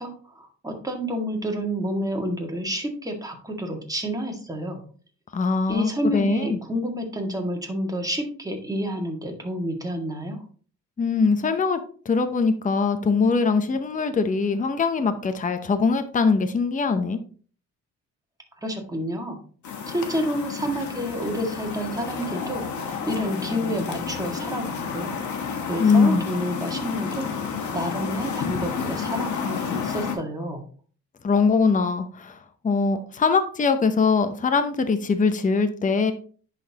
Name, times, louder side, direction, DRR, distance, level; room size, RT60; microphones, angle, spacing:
voice 1, 0.0-4.8 5.7-10.4 18.6-19.4 19.9-22.7 23.0-25.4 25.7-27.3 27.7-30.6, equal, 10° right, 2 dB, 1.9 m, -29 dB
voice 2, 5.3-6.6 11.0-11.8 12.0-17.2 25.8-26.3 31.2-32.4 32.6-36.1, left 4 dB, 25° left, 8 dB, 0.8 m, -22 dB
sound 1, 19.6-30.2, left 6 dB, 70° left, 1.5 m, -31 dB
10.5 x 4.1 x 2.9 m, 0.42 s
cardioid pair, 90°, 30 cm